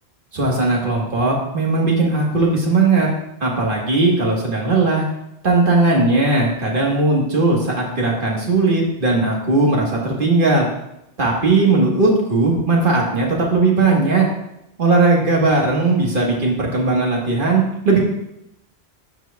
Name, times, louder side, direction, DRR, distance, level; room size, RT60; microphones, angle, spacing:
voice 1, 0.3-3.1 3.4-5.0 5.4-10.7 11.2-14.3 14.8-18.0, right 3 dB, 55° right, -1 dB, 1.6 m, -18 dB
11.5 x 4.6 x 2.3 m, 0.83 s
omnidirectional pair, 1.1 m